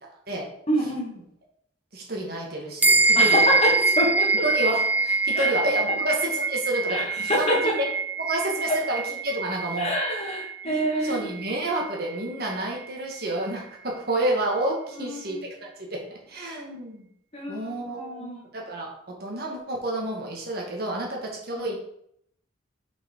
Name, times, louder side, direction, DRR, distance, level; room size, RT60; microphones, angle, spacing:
voice 1, 0.0-0.5 1.9-3.6 4.4-7.7 8.2-9.9 10.6-17.0 17.5-21.7, right 1 dB, 50° right, -1 dB, 2.1 m, -30 dB
voice 2, 0.7-1.1 3.2-4.3 5.3-5.5 6.9-7.6 8.7-8.8 9.8-11.2 15.0-15.5 17.3-18.4 21.6-21.7, equal, 30° left, -1 dB, 1.9 m, -26 dB
sound 1, 2.8-12.5, right 3 dB, 10° right, 0.6 m, -25 dB
6.0 x 5.9 x 4.6 m, 0.71 s
head